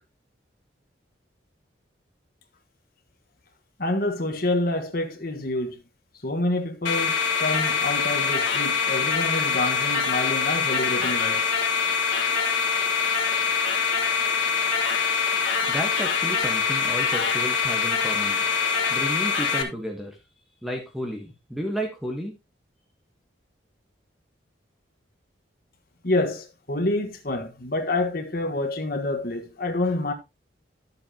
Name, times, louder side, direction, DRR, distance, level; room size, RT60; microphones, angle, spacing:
voice 1, 3.8-5.8 6.2-11.4 26.0-30.1, left 2 dB, 50° left, 1.5 m, -27 dB
sound 1, 6.9-19.6, left 5 dB, 85° left, 1.8 m, -24 dB
voice 2, 15.7-18.4 18.9-20.2 20.6-22.3, equal, ahead, 1.3 m, -32 dB
11.5 x 7.7 x 2.9 m
head